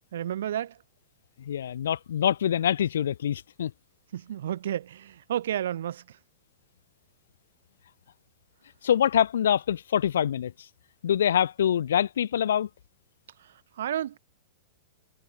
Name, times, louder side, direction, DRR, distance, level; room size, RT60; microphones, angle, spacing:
voice 1, 0.1-0.8 4.1-6.0 13.8-14.2, right 11 dB, 70° right, 1.9 m, -31 dB
voice 2, 1.4-3.7 8.8-10.5 11.0-12.7, left 9 dB, 75° left, 0.6 m, -25 dB
hypercardioid pair, 110°, 0 cm